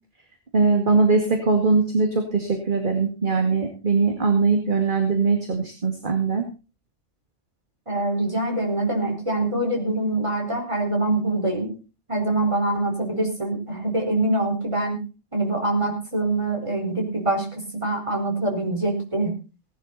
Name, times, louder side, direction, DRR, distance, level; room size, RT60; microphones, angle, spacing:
voice 1, 0.5-6.4, right 4 dB, 45° right, 4 dB, 2.2 m, -21 dB
voice 2, 7.9-11.8 12.1-15.0 15.3-19.3, right 2 dB, 25° right, 2 dB, 4.8 m, -24 dB
18.0 x 11.5 x 4.1 m, 0.33 s
omnidirectional pair, 1.2 m